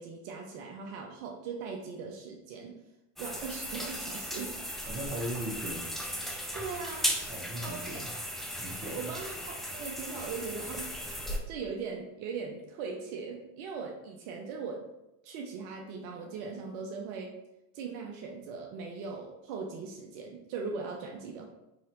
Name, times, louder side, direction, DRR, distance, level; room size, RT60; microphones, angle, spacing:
voice 1, 0.0-2.8 3.2-4.5 6.5-7.2 7.6-8.0 8.9-14.8 15.2-17.3 17.7-21.5, right 5 dB, 65° right, 1 dB, 0.7 m, -40 dB
sound 1, 3.2-11.4, equal, ahead, 0.3 m, -37 dB
voice 2, 4.9-5.9 7.3-8.1 8.6-9.1, right 1 dB, 20° right, -2 dB, 1.1 m, -38 dB
3.9 x 2.8 x 3.0 m, 0.95 s
hypercardioid pair, 75°, 44 cm